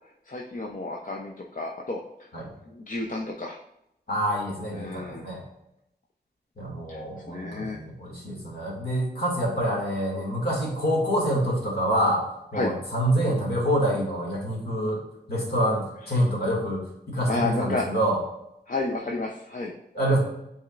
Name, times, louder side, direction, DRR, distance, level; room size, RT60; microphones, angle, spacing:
voice 1, 0.0-2.3 2.6-3.6 4.7-5.3 6.9-7.8 12.5-12.7 16.0-16.2 17.3-17.9 18.7-19.7, left 2 dB, 50° left, 0 dB, 0.7 m, -32 dB
voice 2, 4.1-5.4 6.6-12.3 12.5-18.2 19.9-20.2, equal, 65° left, -3 dB, 2.3 m, -26 dB
8.8 x 4.3 x 2.5 m, 0.82 s
wide cardioid pair, 80°, 17 cm